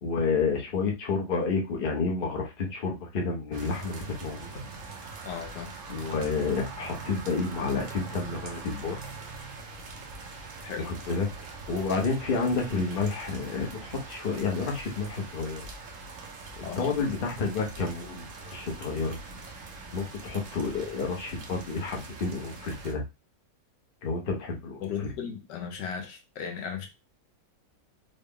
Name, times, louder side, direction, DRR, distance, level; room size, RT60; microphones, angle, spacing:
voice 1, 0.0-4.6 5.9-9.0 10.8-11.3 11.7-15.7 16.8-19.2 19.9-23.0 24.0-24.9, left 4 dB, 50° left, 0.6 m, -30 dB
sound 1, 3.5-22.9, right 3 dB, 60° right, 0.8 m, -43 dB
voice 2, 5.2-5.8 10.6-10.9 16.6-16.9 24.8-26.9, left 7 dB, 75° left, 1.3 m, -36 dB
3.8 x 2.1 x 3.6 m
omnidirectional pair, 1.9 m